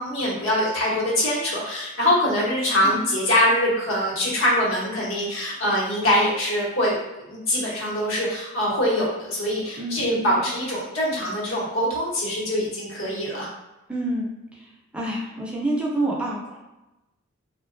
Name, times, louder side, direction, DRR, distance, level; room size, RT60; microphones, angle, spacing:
voice 1, 0.0-13.5, left 1 dB, 85° left, -4 dB, 0.9 m, -23 dB
voice 2, 9.8-10.4 13.9-14.3 14.6-14.7 14.9-16.6, right 1 dB, 5° right, -4 dB, 0.4 m, -28 dB
2.8 x 2.2 x 2.5 m, 1.0 s
head